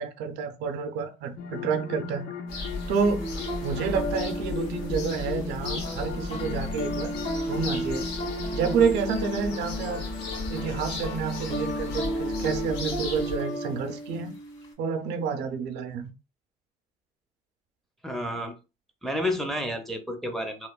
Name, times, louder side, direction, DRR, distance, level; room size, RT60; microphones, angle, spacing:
voice 1, 0.0-2.3 2.9-3.3 3.6-7.1 7.5-8.1 8.5-10.1 10.5-14.3 14.8-16.1, right 5 dB, 80° right, 0.5 m, -29 dB
sound 1, 1.4-12.7, left 6 dB, 70° left, 0.6 m, -37 dB
sound 2, 2.5-13.4, left 3 dB, 85° left, 1.0 m, -36 dB
sound 3, 3.2-14.7, right 1 dB, 45° left, 1.5 m, -35 dB
voice 2, 18.0-18.5 19.0-20.7, left 1 dB, ahead, 0.5 m, -30 dB
3.0 x 2.1 x 2.2 m
cardioid pair, 110°, 17 cm